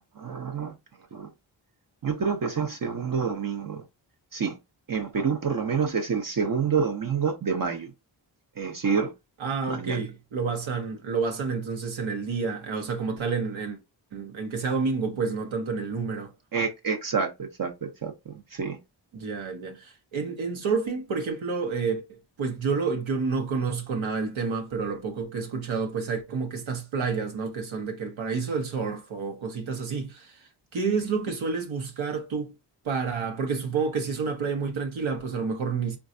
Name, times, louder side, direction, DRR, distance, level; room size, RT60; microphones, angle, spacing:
voice 1, 0.2-0.7 1.1-1.3 2.0-3.8 4.3-4.6 4.9-7.9 8.6-9.1 9.7-10.0 16.5-18.8, right 6 dB, 45° right, 0.7 m, -28 dB
voice 2, 9.4-13.8 14.1-16.3 19.1-30.4 30.7-32.5 32.8-36.0, right 5 dB, 75° right, 0.9 m, -29 dB
3.8 x 2.3 x 2.5 m
cardioid pair, 45°, 47 cm